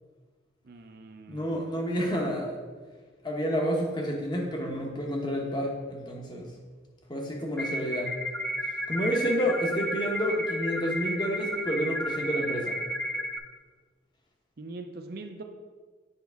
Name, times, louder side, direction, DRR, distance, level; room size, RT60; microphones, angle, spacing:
voice 1, 0.6-1.7 14.6-15.4, right 2 dB, 50° right, 4 dB, 0.5 m, -42 dB
voice 2, 1.3-2.6 3.2-6.5 7.1-8.1 8.9-12.8, equal, 20° left, 0 dB, 1.0 m, -29 dB
sound 1, 7.6-13.4, equal, 5° left, 0.5 m, -32 dB
8.1 x 5.3 x 3.5 m, 1.4 s
head